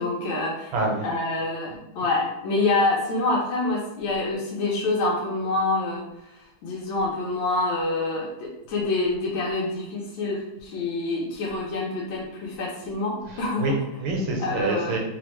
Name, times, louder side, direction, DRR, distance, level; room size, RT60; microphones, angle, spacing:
voice 1, 0.0-0.7 1.0-6.0 6.6-13.6 14.4-15.0, left 2 dB, 70° left, -3 dB, 1.4 m, -26 dB
voice 2, 0.7-1.1 1.7-1.8 13.3-15.0, right 2 dB, 80° right, 0 dB, 1.4 m, -27 dB
3.6 x 2.1 x 3.0 m, 0.93 s
omnidirectional pair, 2.3 m